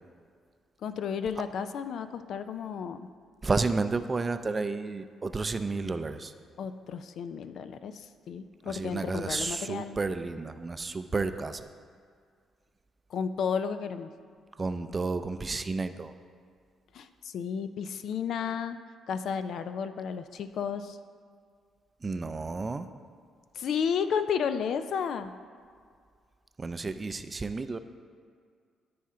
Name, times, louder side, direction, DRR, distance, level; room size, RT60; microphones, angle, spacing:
voice 1, 0.8-3.0 6.6-10.0 13.1-14.1 16.9-18.8 19.1-21.0 23.5-25.3, left 7 dB, 70° left, 10 dB, 0.4 m, -32 dB
voice 2, 3.4-6.3 8.7-11.7 14.6-16.1 22.0-22.9 26.6-27.8, right 3 dB, 30° right, 10 dB, 0.4 m, -31 dB
13.0 x 4.3 x 3.8 m, 2.1 s
cardioid pair, 90°, 0 cm